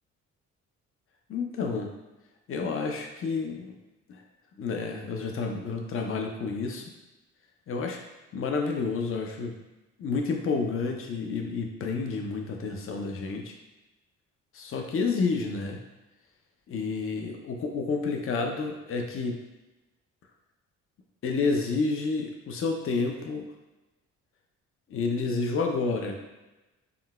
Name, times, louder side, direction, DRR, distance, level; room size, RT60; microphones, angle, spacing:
voice 1, 1.3-1.9 2.5-3.7 4.1-4.2 4.6-6.8 7.7-8.0 8.3-9.5 10.0-13.5 14.5-15.8 16.7-19.4 21.2-23.5 24.9-26.2, left 4 dB, 45° left, 3 dB, 0.5 m, -30 dB
3.7 x 2.2 x 2.3 m, 1.1 s
cardioid pair, 90°, 30 cm